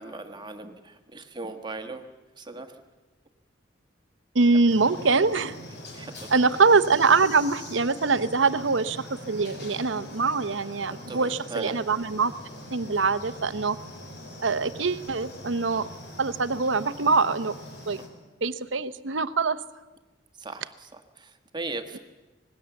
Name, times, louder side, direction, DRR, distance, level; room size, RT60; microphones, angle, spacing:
voice 1, 0.0-2.0 2.4-2.8 5.9-6.4 10.9-11.8 20.4-22.0, right 3 dB, 25° right, 6 dB, 1.4 m, -38 dB
voice 2, 4.3-5.6 6.3-12.3 12.7-13.8 14.4-15.9 16.2-17.5 17.9-18.0 18.4-19.6, right 4 dB, 80° right, 12 dB, 0.9 m, -23 dB
sound 1, 4.7-18.1, left 1 dB, 60° left, 4.8 m, -42 dB
26.0 x 19.5 x 7.2 m, 1.2 s
head